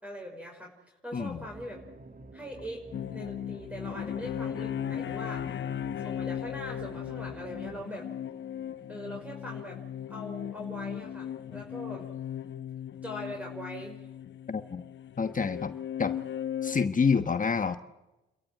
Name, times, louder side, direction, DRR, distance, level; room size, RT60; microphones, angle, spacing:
voice 1, 0.0-1.8 2.3-2.8 3.1-5.6 6.0-8.1 8.9-9.8 10.1-12.1 13.0-14.0, equal, 5° right, 0 dB, 5.4 m, -41 dB
voice 2, 1.1-1.4 14.5-14.8 15.2-15.7 16.0-16.1 16.6-17.8, left 5 dB, 40° left, 9 dB, 1.2 m, -27 dB
sound 1, 1.2-7.8, right 2 dB, 45° right, 2.0 m, -49 dB
sound 2, 2.9-16.9, left 9 dB, 65° left, 0.9 m, -37 dB
sound 3, 4.9-12.5, right 3 dB, 75° right, 6.2 m, -63 dB
29.5 x 13.5 x 9.2 m, 1.0 s
cardioid pair, 60°, 21 cm